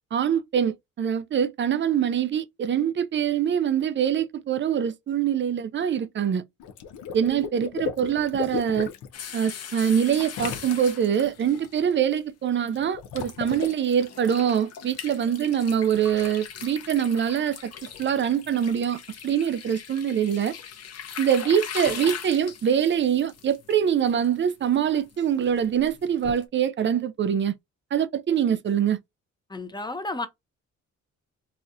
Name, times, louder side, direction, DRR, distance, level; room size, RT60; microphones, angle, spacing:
voice 1, 0.1-6.4 7.1-8.9 9.3-17.7 18.0-20.5 21.2-27.5 27.9-29.0, right 8 dB, 40° right, 0.5 m, -24 dB
Water / Liquid, 6.6-9.1 10.2-11.2 12.7-13.7, left 6 dB, 80° left, 0.8 m, -34 dB
sound 1, 9.1-12.2 12.8-12.9 13.2-26.4, left 8 dB, 55° left, 0.9 m, -40 dB
voice 2, 29.5-30.3, left 2 dB, 15° left, 0.8 m, -32 dB
4.1 x 2.4 x 2.6 m
cardioid pair, 90°, 30 cm